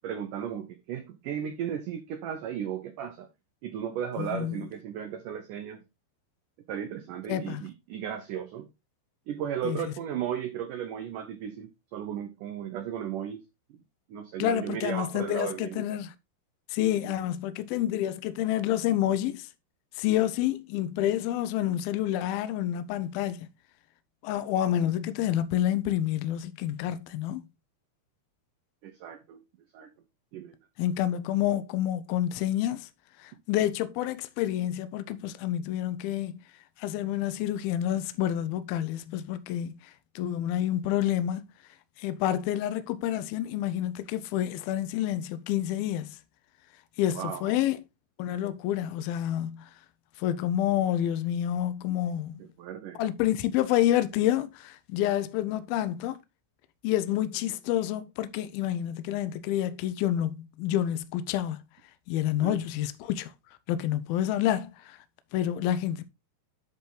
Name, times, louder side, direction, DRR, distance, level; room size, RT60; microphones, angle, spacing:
voice 1, 0.0-3.3 3.6-5.8 6.7-8.7 9.3-13.4 13.7-13.8 14.1-15.8 17.0-17.1 28.8-29.4 29.7-29.9 30.3-30.6 47.1-47.5 52.6-53.0 62.4-62.6, right 9 dB, 85° right, 1.8 m, -35 dB
voice 2, 4.2-4.7 7.3-7.6 9.6-9.9 14.4-16.1 16.7-19.5 20.0-23.5 24.2-27.5 30.8-32.9 33.2-36.4 36.8-39.8 40.2-41.4 42.0-46.2 47.0-47.8 48.2-49.7 50.2-52.4 53.0-56.2 56.8-61.6 62.1-63.3 63.7-65.0 65.3-66.0, left 12 dB, 80° left, 2.3 m, -28 dB
10.5 x 4.3 x 3.8 m
omnidirectional pair, 4.9 m